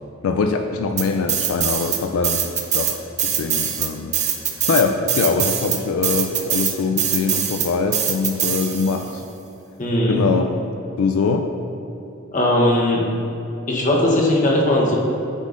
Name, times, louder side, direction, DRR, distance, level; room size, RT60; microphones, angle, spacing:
voice 1, 0.2-2.4 2.7-2.9 3.2-4.1 4.7-9.2 10.1-10.5 11.0-11.5, left 4 dB, 85° left, 5 dB, 0.3 m, -22 dB
sound 1, 1.0-9.1, right 9 dB, 35° right, 0.5 m, -22 dB
voice 2, 9.8-10.2 12.3-13.1 13.7-15.0, left 1 dB, 40° left, -3 dB, 1.0 m, -18 dB
8.6 x 5.5 x 2.5 m, 2.8 s
head